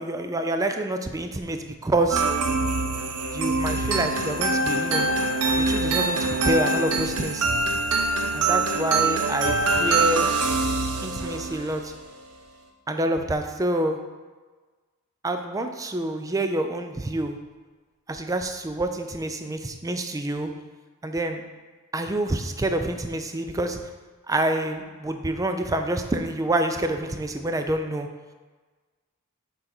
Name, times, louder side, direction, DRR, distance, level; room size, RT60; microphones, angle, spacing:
voice 1, 0.0-2.2 3.3-5.1 5.6-7.5 8.3-10.3 11.0-11.9 12.9-14.0 15.2-17.4 18.1-20.5 21.0-21.4 21.9-23.8 24.3-28.1, right 1 dB, 15° right, 6 dB, 0.4 m, -27 dB
sound 1, 2.1-11.8, right 3 dB, 90° right, 0.7 m, -24 dB
6.3 x 3.9 x 4.4 m, 1.3 s
head